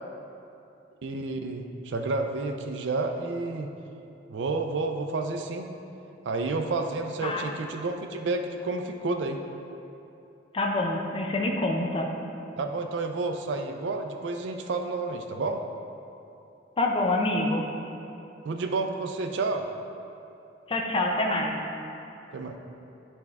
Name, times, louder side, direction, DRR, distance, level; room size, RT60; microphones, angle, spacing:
voice 1, 1.0-3.7 4.3-5.7 6.2-9.4 12.6-15.6 18.5-19.7 22.3-22.6, right 3 dB, 70° right, 4 dB, 0.4 m, -30 dB
voice 2, 10.5-12.1 16.8-17.7 20.7-21.6, left 2 dB, 30° left, 1 dB, 0.5 m, -26 dB
9.7 x 3.5 x 3.4 m, 2.8 s
head